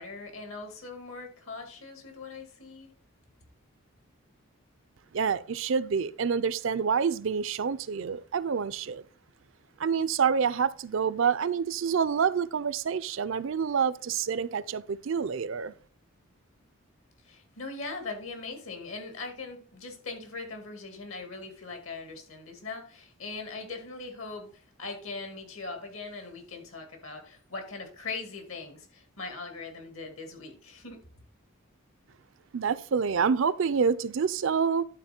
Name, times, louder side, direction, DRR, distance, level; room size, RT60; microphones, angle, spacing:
voice 1, 0.0-2.9 17.2-31.0, left 3 dB, 70° left, 2.2 m, -40 dB
voice 2, 5.1-9.0 9.8-15.7 32.5-34.8, right 6 dB, 65° right, 0.4 m, -27 dB
11.0 x 4.3 x 4.3 m
head